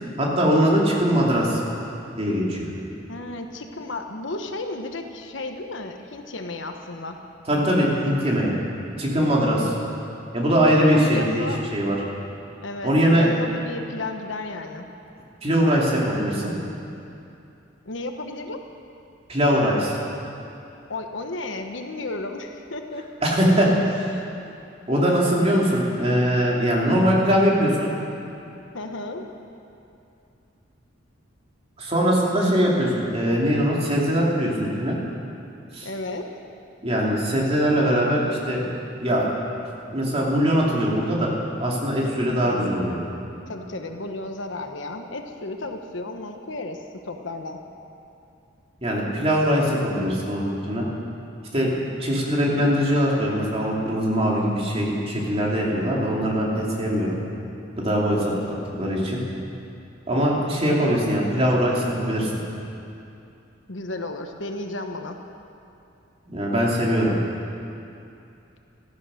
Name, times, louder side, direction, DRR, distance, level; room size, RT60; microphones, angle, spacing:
voice 1, 0.2-1.6 2.2-2.7 7.5-8.5 9.0-9.7 10.3-12.0 12.8-13.3 15.4-16.5 19.3-20.0 23.2-24.1 24.9-27.9 31.8-35.0 35.7-35.9 36.8-38.6 39.0-39.3 39.9-41.3 41.6-43.0 48.8-50.9 51.5-57.2 57.8-58.3 58.8-59.2 60.1-62.3 66.3-67.1, equal, 30° right, -3 dB, 2.9 m, -21 dB
voice 2, 3.1-7.2 9.4-9.8 10.9-11.6 12.6-14.9 17.8-18.6 20.9-23.1 28.7-29.2 35.8-36.3 42.4-42.8 43.5-46.8 47.1-47.6 58.2-58.7 63.7-65.2, left 2 dB, 70° left, 5 dB, 1.2 m, -33 dB
15.5 x 14.0 x 6.5 m, 2.7 s
head